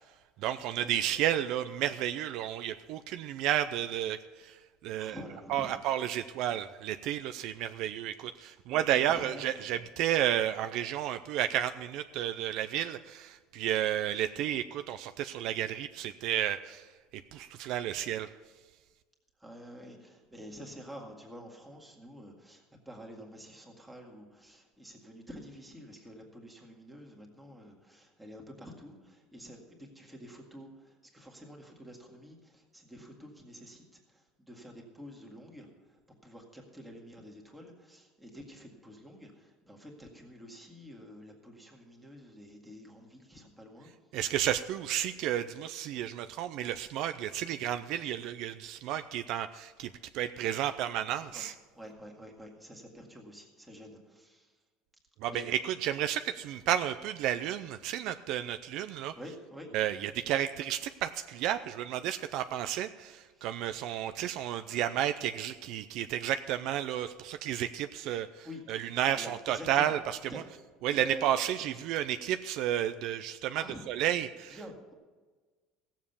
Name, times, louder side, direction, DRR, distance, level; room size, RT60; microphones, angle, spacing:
voice 1, 0.4-4.6 4.8-5.2 5.5-16.9 17.3-18.3 44.1-51.5 55.2-59.1 59.7-70.2 70.8-74.6, right 11 dB, 55° right, 10 dB, 0.4 m, -32 dB
voice 2, 5.0-5.7 8.4-9.4 14.1-14.3 19.4-43.9 51.3-51.4 51.7-54.5 55.3-55.5 59.2-59.7 63.3-63.5 68.4-68.6 69.1-69.9 70.3-70.4 70.9-71.7 73.5-73.8 74.5-74.9, equal, 5° right, 0 dB, 1.9 m, -48 dB
16.5 x 7.4 x 7.0 m, 1.4 s
cardioid pair, 160°, 0 cm